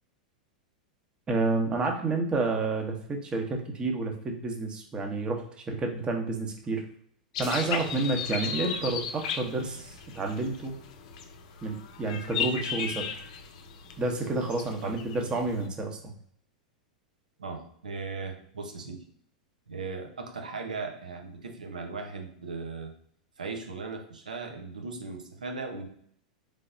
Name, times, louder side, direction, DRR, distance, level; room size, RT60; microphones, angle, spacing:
voice 1, 1.3-6.8 7.4-10.8 11.6-13.1 14.0-16.1, right 3 dB, 20° right, 2 dB, 0.9 m, -30 dB
sound 1, 7.3-15.7, left 7 dB, 60° left, 0.6 m, -36 dB
sound 2, 7.4-10.0, left 3 dB, 20° left, 1.2 m, -48 dB
voice 2, 17.4-19.0 19.7-22.9 23.4-25.9, right 4 dB, 80° right, 4 dB, 0.8 m, -38 dB
3.9 x 3.4 x 2.6 m, 0.65 s
figure-of-eight pair, 90°, 4 cm